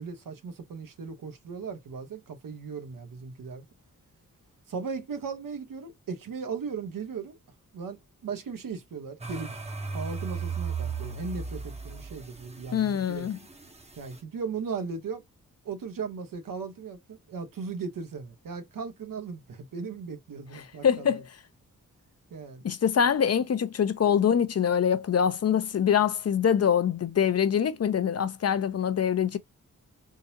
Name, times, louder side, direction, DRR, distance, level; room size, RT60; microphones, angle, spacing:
voice 1, 0.0-3.7 4.7-7.4 7.7-9.6 9.9-13.3 14.0-15.2 15.6-21.1 22.3-22.6, right 5 dB, 85° right, 1.0 m, -37 dB
sound 1, 9.2-14.1, right 5 dB, 20° right, 0.7 m, -36 dB
voice 2, 12.7-13.4 20.5-21.3 22.6-29.4, left 8 dB, 50° left, 0.6 m, -24 dB
3.8 x 2.7 x 2.7 m
wide cardioid pair, 100°, 33 cm